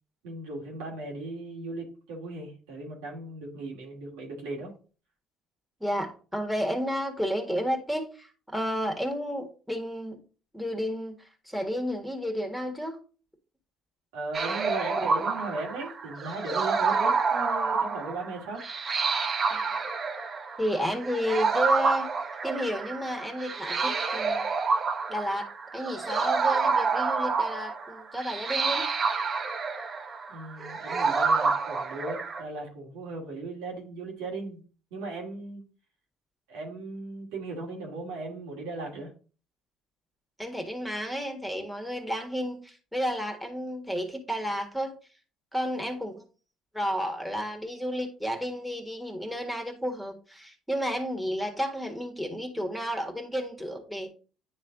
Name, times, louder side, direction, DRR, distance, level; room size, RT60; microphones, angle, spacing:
voice 1, 0.2-4.7 14.1-18.6 30.3-34.6 34.9-35.6 36.5-39.1, right 2 dB, 85° right, -1 dB, 2.3 m, -37 dB
voice 2, 5.8-10.2 10.5-11.1 11.5-13.0 15.0-15.1 19.5-19.8 20.6-22.1 22.4-24.5 25.1-25.5 25.7-28.9 40.4-45.0 45.5-46.2 46.7-54.1, equal, ahead, 4 dB, 1.7 m, -31 dB
sound 1, 14.3-32.4, right 4 dB, 40° right, 0.9 m, -28 dB
9.7 x 3.2 x 3.8 m, 0.36 s
supercardioid pair, 75°, 0 cm